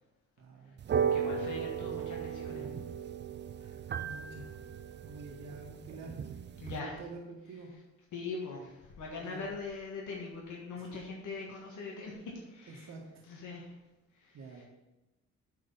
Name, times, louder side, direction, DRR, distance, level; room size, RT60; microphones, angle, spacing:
voice 1, 0.4-0.9 3.6-4.5 5.0-6.2 6.7-7.7 9.2-9.5 10.7-11.0 12.7-13.0 14.3-14.6, right 3 dB, 65° right, -1 dB, 1.4 m, -48 dB
sound 1, 0.8-6.8, right 7 dB, 35° right, 0.5 m, -36 dB
voice 2, 1.1-2.7 6.6-7.0 8.1-12.9 13.2-13.7 14.2-14.6, left 3 dB, 80° left, -1 dB, 1.6 m, -42 dB
8.5 x 4.5 x 5.5 m, 1.0 s
cardioid pair, 90°, 30 cm